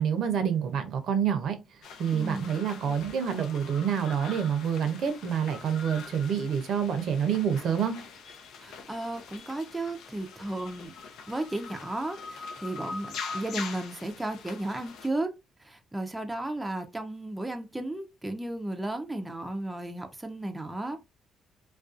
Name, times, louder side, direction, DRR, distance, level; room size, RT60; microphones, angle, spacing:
voice 1, 0.0-1.6 2.0-8.0, right 8 dB, 70° right, 0.6 m, -27 dB
sound 1, 1.8-15.1, left 5 dB, 75° left, 0.5 m, -43 dB
voice 2, 2.1-2.5 8.6-10.9 11.3-15.3 15.6-21.1, right 1 dB, 10° right, 0.4 m, -34 dB
2.5 x 2.2 x 2.4 m
cardioid pair, 80°, 0 cm